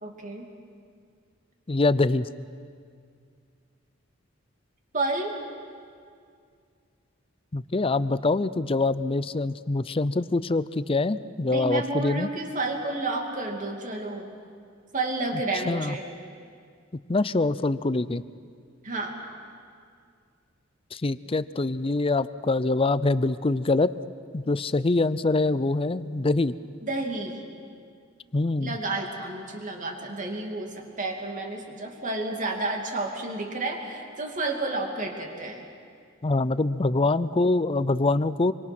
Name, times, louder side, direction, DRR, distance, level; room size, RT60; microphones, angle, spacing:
voice 1, 0.0-0.5 4.9-5.4 11.5-14.3 14.9-16.0 18.8-19.2 26.8-27.4 28.6-35.7, right 2 dB, 40° right, 2 dB, 2.7 m, -31 dB
voice 2, 1.7-2.3 7.5-12.3 15.7-15.9 17.1-18.2 20.9-23.9 24.3-26.5 28.3-28.8 36.2-38.5, left 2 dB, 30° left, 15 dB, 0.5 m, -24 dB
26.0 x 24.0 x 6.1 m, 2.2 s
head